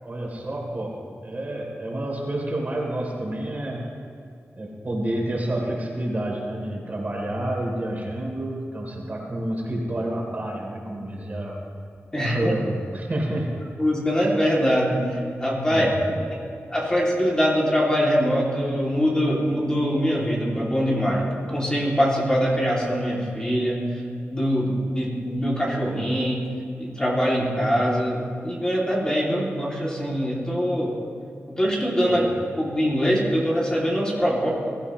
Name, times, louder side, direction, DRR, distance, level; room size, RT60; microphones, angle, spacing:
voice 1, 0.0-3.9 4.5-11.6 12.2-13.6 15.7-16.2 32.1-32.4, right 1 dB, 35° right, -1 dB, 3.4 m, -29 dB
voice 2, 12.1-12.5 13.8-15.9 16.7-24.0 24.3-26.5 26.8-30.9 31.5-32.2 32.6-34.5, equal, 15° left, -4 dB, 2.8 m, -23 dB
22.0 x 14.5 x 3.2 m, 2.4 s
wide cardioid pair, 90°, 5 cm